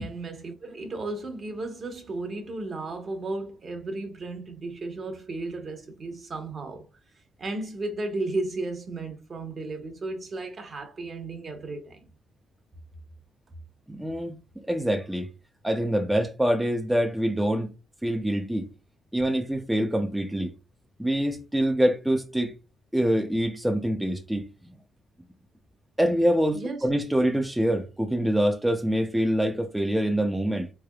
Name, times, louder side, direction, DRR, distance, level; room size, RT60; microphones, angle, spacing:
voice 1, 0.0-6.9 7.4-12.0 26.5-26.9, right 2 dB, 45° right, 1.1 m, -34 dB
voice 2, 13.9-14.4 14.7-15.3 15.6-17.7 18.0-18.7 19.1-20.5 21.0-22.5 22.9-24.5 26.0-30.7, equal, 5° right, 0.5 m, -25 dB
3.5 x 3.3 x 2.3 m
cardioid pair, 90°, 0 cm